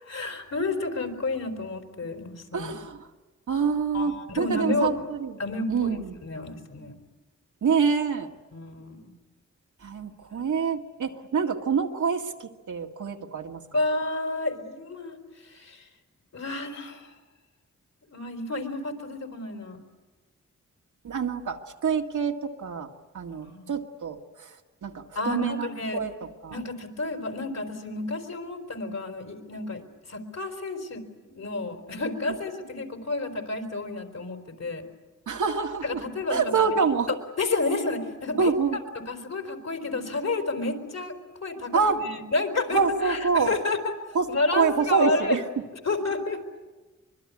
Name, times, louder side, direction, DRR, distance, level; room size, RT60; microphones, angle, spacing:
voice 1, 0.0-2.7 3.9-5.0 5.4-5.9 6.2-7.0 8.5-9.1 10.4-10.7 13.7-15.2 15.4-15.8 16.3-17.1 18.1-19.8 23.4-23.7 25.1-26.0 26.5-29.8 30.1-31.0 31.3-34.8 35.8-36.8 37.4-38.5 39.1-41.7 42.0-43.9 44.3-45.4 45.8-46.4, left 3 dB, 60° left, 6 dB, 4.4 m, -30 dB
voice 2, 2.5-3.0 3.5-5.4 5.7-6.2 7.6-8.3 9.8-13.6 21.0-24.5 24.8-25.7 25.9-26.1 26.4-26.6 35.3-36.0 36.3-37.1 38.4-38.8 41.7-42.0 42.7-43.5 44.1-45.4, right 5 dB, 75° right, 3 dB, 2.0 m, -26 dB
25.0 x 22.0 x 9.7 m, 1.3 s
cardioid pair, 55°, 30 cm